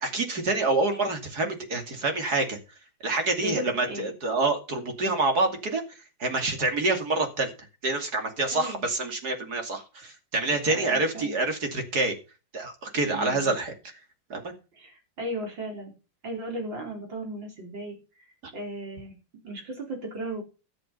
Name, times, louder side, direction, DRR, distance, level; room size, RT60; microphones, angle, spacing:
voice 1, 0.0-2.6 3.0-5.8 6.2-7.5 7.8-12.2 12.5-13.7 14.3-14.5, right 2 dB, 50° right, 5 dB, 3.1 m, -27 dB
voice 2, 3.4-4.1 8.5-8.9 10.6-11.4 13.1-13.6 14.8-15.9 16.2-18.3 18.5-19.2 19.4-20.4, right 1 dB, 65° right, 2 dB, 5.2 m, -36 dB
13.0 x 8.5 x 5.6 m, 0.31 s
omnidirectional pair, 2.1 m